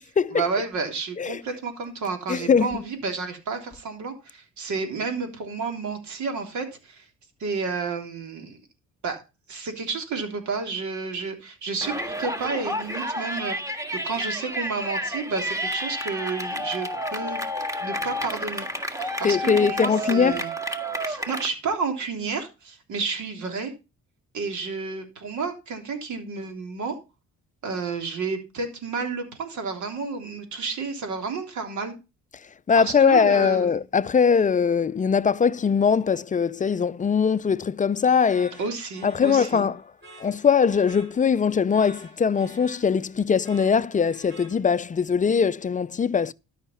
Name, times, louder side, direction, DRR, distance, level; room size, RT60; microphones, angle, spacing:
voice 1, 0.3-7.0 7.4-8.6 9.0-9.2 9.5-13.8 14.0-17.4 17.8-20.5 21.0-23.7 24.3-26.9 27.6-31.9 32.8-33.7 38.6-39.7, right 4 dB, 70° right, 3.4 m, -31 dB
voice 2, 2.3-2.8 19.2-20.4 32.7-38.6 39.0-39.8 40.2-46.3, left 6 dB, 25° left, 0.5 m, -21 dB
Yell, 11.8-21.5, equal, 10° right, 1.6 m, -30 dB
sound 1, 38.3-45.0, right 1 dB, 35° right, 7.0 m, -49 dB
13.0 x 5.8 x 5.7 m
cardioid pair, 90°, 30 cm